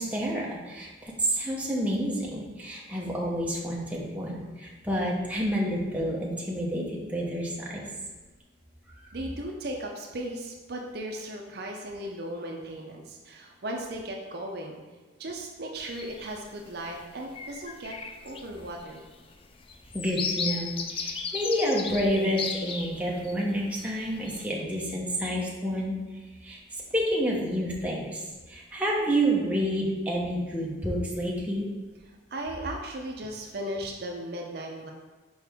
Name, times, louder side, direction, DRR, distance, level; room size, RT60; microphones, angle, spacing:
voice 1, 0.0-7.8 19.9-26.0 26.4-31.7, equal, 5° right, -4 dB, 0.9 m, -29 dB
voice 2, 9.1-14.8 15.2-18.0 18.2-19.0 32.1-34.9, right 1 dB, 50° right, 1 dB, 0.6 m, -36 dB
sound 1, 15.8-16.4 16.9-17.0 17.3-23.3 23.8-24.4, left 5 dB, 25° left, 0.3 m, -35 dB
6.2 x 4.9 x 3.5 m, 1.3 s
head